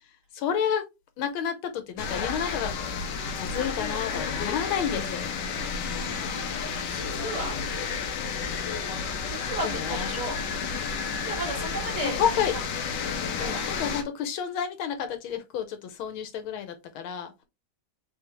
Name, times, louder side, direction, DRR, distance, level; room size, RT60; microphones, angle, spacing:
voice 1, 0.3-0.8 1.2-5.3 9.6-10.1 12.0-12.5 13.4-17.3, left 8 dB, 85° left, 1.6 m, -30 dB
sound 1, 2.0-14.0, left 5 dB, 65° left, 1.2 m, -31 dB
voice 2, 5.8-7.6 9.3-10.4 11.1-12.4 13.3-13.7, right 1 dB, 20° right, 1.7 m, -35 dB
3.9 x 3.5 x 3.0 m
omnidirectional pair, 2.2 m